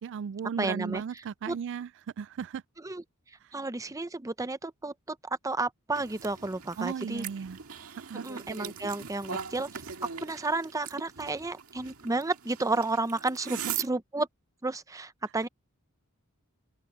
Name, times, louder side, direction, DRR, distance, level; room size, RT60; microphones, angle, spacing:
voice 1, 0.0-1.9 2.2-2.6 3.4-3.6 6.8-7.6 8.1-8.2 13.5-13.8, right 7 dB, 55° right, 0.3 m, -36 dB
voice 2, 0.6-1.0 1.5-1.6 2.8-3.0 3.5-5.2 5.4-7.2 8.2-9.7 10.2-14.3 14.6-15.5, right 2 dB, 15° right, 0.6 m, -32 dB
sound 1, 5.9-13.9, right 8 dB, 80° right, 2.0 m, -40 dB
open air
head